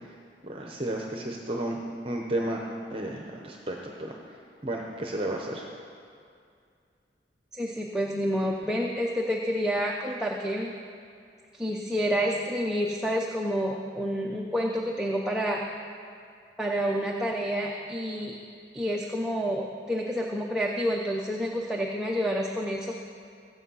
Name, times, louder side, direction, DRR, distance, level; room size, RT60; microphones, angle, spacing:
voice 1, 0.4-2.6 2.9-4.1 4.6-5.7, right 1 dB, 30° right, 0 dB, 0.8 m, -32 dB
voice 2, 7.5-10.7 11.5-15.6 16.6-18.4 18.7-22.9, equal, 5° right, -2 dB, 0.6 m, -29 dB
15.5 x 8.2 x 5.5 m, 2.3 s
head